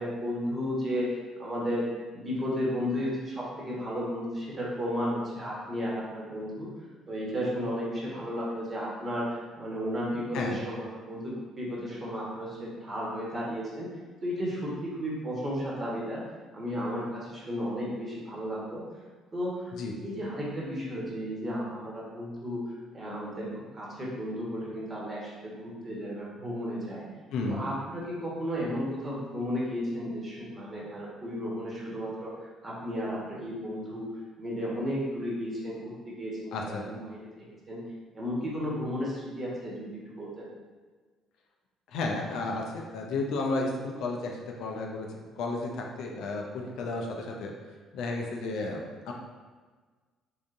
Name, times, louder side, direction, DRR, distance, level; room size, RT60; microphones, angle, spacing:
voice 1, 0.0-1.8 2.1-6.7 7.1-13.9 14.2-16.2 16.5-18.8 19.3-19.7 20.0-22.6 22.9-27.0 27.5-34.0 34.4-37.2 37.7-37.8 38.1-39.9 40.2-40.5, equal, 35° right, -5 dB, 1.3 m, -33 dB
voice 2, 27.3-27.6 36.5-36.8 41.9-47.5 47.9-49.1, left 3 dB, 60° left, 1 dB, 0.4 m, -33 dB
3.6 x 3.4 x 2.5 m, 1.4 s
figure-of-eight pair, 50°, 0 cm